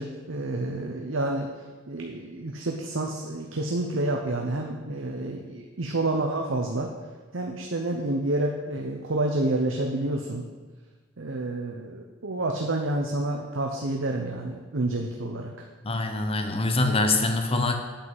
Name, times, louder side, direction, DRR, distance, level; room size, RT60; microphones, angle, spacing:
voice 1, 0.0-1.5 1.9-6.9 7.3-10.5 11.2-15.7, right 2 dB, 80° right, 1 dB, 0.9 m, -29 dB
voice 2, 15.8-17.8, left 2 dB, 30° left, 5 dB, 0.9 m, -24 dB
8.7 x 5.6 x 7.8 m, 1.4 s
head